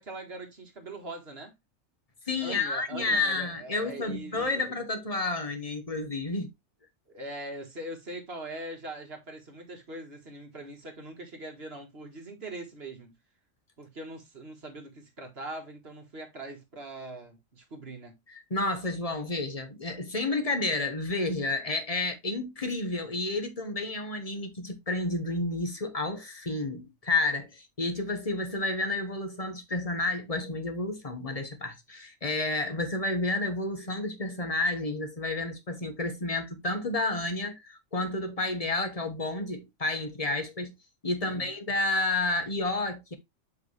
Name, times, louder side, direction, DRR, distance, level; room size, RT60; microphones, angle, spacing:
voice 1, 0.0-1.5 2.4-4.7 7.1-13.2 13.8-18.2 41.2-41.5, right 1 dB, 55° right, 1.9 m, -42 dB
voice 2, 2.3-6.5 18.3-40.7 41.0-43.1, left 2 dB, 30° left, 1.3 m, -30 dB
8.0 x 5.0 x 3.2 m
omnidirectional pair, 1.3 m